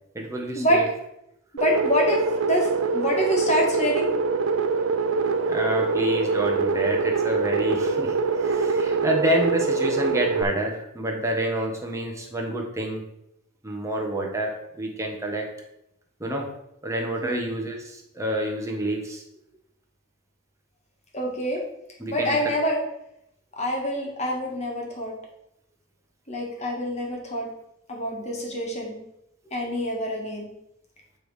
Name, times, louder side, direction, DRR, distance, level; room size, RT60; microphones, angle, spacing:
voice 1, 0.1-0.8 5.5-13.0 13.6-14.5 14.8-15.4 16.2-16.5 16.8-19.2 22.0-22.5, right 1 dB, 15° right, 0 dB, 1.2 m, -28 dB
voice 2, 1.5-4.1 17.2-17.5 21.1-21.6 22.1-22.8 23.6-25.1 26.3-27.5 27.9-29.0 29.5-30.5, equal, 35° left, 0 dB, 1.7 m, -26 dB
sound 1, 1.6-10.4, right 4 dB, 75° right, 0.4 m, -24 dB
8.6 x 3.5 x 4.8 m, 0.81 s
head